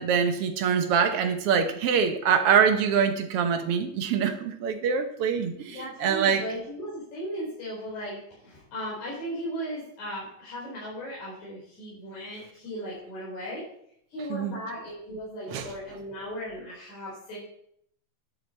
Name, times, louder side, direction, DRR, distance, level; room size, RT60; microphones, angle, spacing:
voice 1, 0.0-6.4 14.3-14.6 15.5-15.7, right 7 dB, 70° right, 1.4 m, -24 dB
voice 2, 5.7-13.6 14.1-17.4, equal, 55° left, 5.8 m, -37 dB
11.5 x 9.4 x 4.4 m
omnidirectional pair, 3.9 m